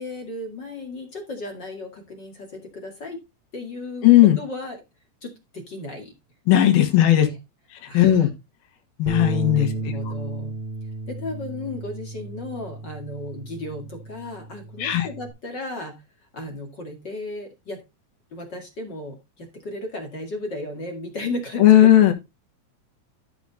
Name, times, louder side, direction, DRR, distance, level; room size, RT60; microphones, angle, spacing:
voice 1, 0.0-3.2 3.5-4.1 4.4-4.8 5.2-6.1 7.1-7.4 7.9-8.3 9.5-10.6 11.1-16.0 16.3-17.8 18.3-22.1, left 2 dB, 35° left, 2 dB, 2.1 m, -35 dB
voice 2, 4.0-4.4 6.5-7.3 7.9-8.3 9.0-9.7 10.1-10.2 14.8-15.1 21.6-22.1, left 12 dB, 85° left, 5 dB, 3.2 m, -15 dB
Bass guitar, 9.1-15.3, right 3 dB, 15° right, 3.1 m, -33 dB
13.0 x 5.0 x 4.0 m, 0.24 s
omnidirectional pair, 4.1 m